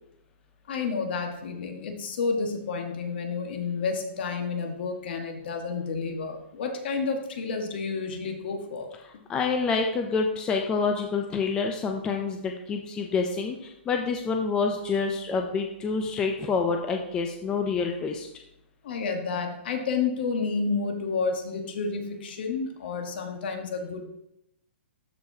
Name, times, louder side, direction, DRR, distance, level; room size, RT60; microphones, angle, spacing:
voice 1, 0.7-8.9 18.8-24.0, left 4 dB, 55° left, 3 dB, 1.4 m, -30 dB
voice 2, 9.3-18.3, left 4 dB, 10° left, 3 dB, 0.4 m, -27 dB
13.0 x 4.7 x 2.7 m, 0.85 s
hypercardioid pair, 160°, 6 cm